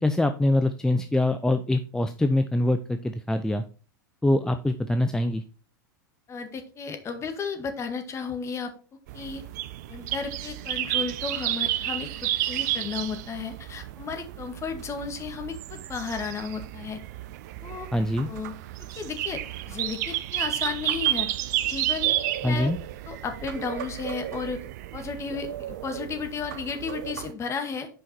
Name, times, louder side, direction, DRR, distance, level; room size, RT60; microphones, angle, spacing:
voice 1, 0.0-3.6 4.2-5.4 17.9-18.3 22.4-22.8, left 1 dB, 5° left, 8 dB, 0.6 m, -24 dB
voice 2, 6.3-8.7 9.1-9.4 9.9-17.0 17.6-17.9 18.3-18.5 18.8-21.3 21.6-22.1 22.4-22.7 23.1-24.6 24.9-27.9, left 5 dB, 25° left, 6 dB, 2.0 m, -34 dB
sound 1, 9.1-27.3, right 14 dB, 55° right, 0.7 m, -32 dB
8.3 x 5.6 x 4.5 m, 0.37 s
figure-of-eight pair, 90°, 11 cm